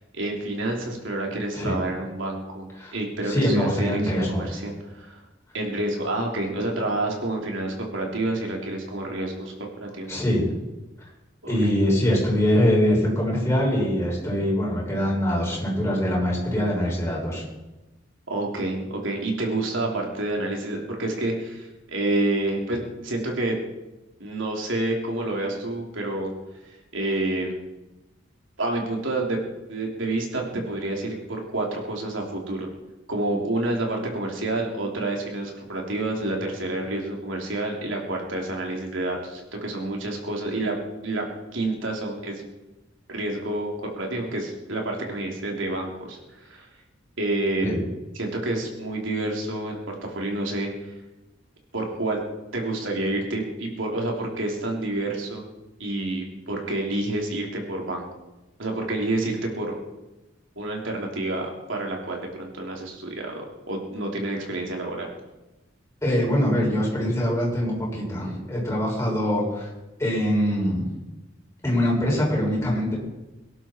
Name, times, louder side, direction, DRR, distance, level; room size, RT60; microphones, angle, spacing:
voice 1, 0.1-5.2 5.5-9.5 9.8-10.1 11.4-11.7 18.3-23.6 24.2-26.3 26.9-27.6 28.6-29.4 29.7-32.7 33.1-40.8 41.0-41.2 41.5-42.4 43.1-46.7 47.2-47.8 48.1-50.7 51.7-52.2 52.5-55.4 55.8-58.0 58.6-59.8 60.5-65.1, right 2 dB, 75° right, 0 dB, 3.4 m, -28 dB
voice 2, 3.2-4.4 10.1-10.5 11.5-17.4 47.6-47.8 66.0-69.7 70.0-70.9 71.6-72.9, equal, 15° left, -4 dB, 6.6 m, -23 dB
23.5 x 11.5 x 4.6 m, 1.0 s
head